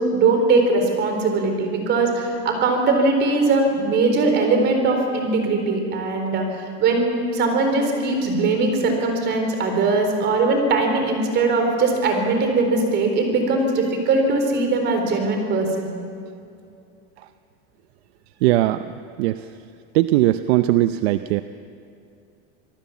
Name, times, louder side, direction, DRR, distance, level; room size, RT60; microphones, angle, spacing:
voice 1, 0.0-15.9, right 3 dB, 30° right, 4 dB, 4.1 m, -20 dB
voice 2, 18.4-18.8 19.2-19.4 19.9-21.4, right 15 dB, 60° right, 11 dB, 0.7 m, -19 dB
26.5 x 18.5 x 7.3 m, 2.5 s
supercardioid pair, 165°, 35 cm